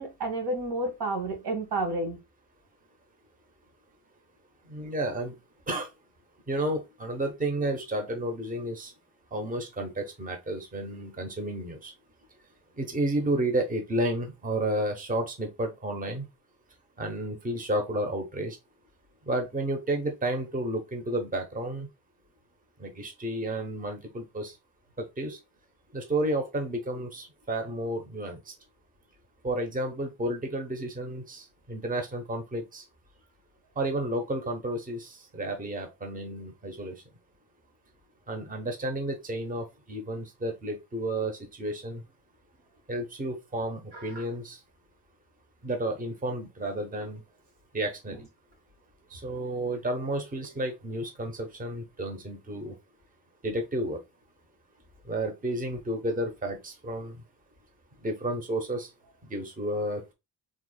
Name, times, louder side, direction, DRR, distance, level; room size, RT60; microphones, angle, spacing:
voice 1, 0.0-2.2 43.9-44.2, right 2 dB, 75° right, 2.1 m, -31 dB
voice 2, 4.7-5.3 5.7-5.9 6.5-8.9 9.3-11.9 12.8-16.3 17.0-18.6 19.3-21.9 22.8-24.6 25.0-25.4 25.9-28.5 29.4-32.8 33.8-37.0 38.3-42.0 42.9-44.6 45.6-47.2 47.7-48.2 49.1-52.7 53.4-54.0 55.0-57.2 58.0-58.9 59.3-60.1, right 1 dB, 20° right, 1.0 m, -31 dB
4.6 x 3.8 x 2.2 m
cardioid pair, 130°, 41 cm